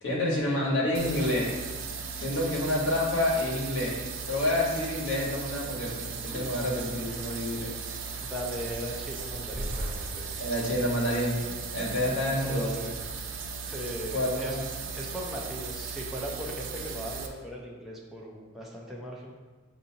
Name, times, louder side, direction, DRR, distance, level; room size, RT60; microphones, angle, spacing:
voice 1, 0.0-1.6 2.1-4.0 4.2-7.7 10.4-11.4 11.7-12.7 14.1-14.6, left 1 dB, 80° left, -4 dB, 1.3 m, -28 dB
sound 1, 0.9-17.3, right 5 dB, 75° right, 0.5 m, -37 dB
sound 2, 5.7-10.3, equal, 35° left, 0.8 m, -41 dB
voice 2, 8.2-10.3 12.3-13.0 13.6-14.6 14.9-19.4, equal, ahead, -4 dB, 0.5 m, -38 dB
6.8 x 2.6 x 2.8 m, 1.3 s
head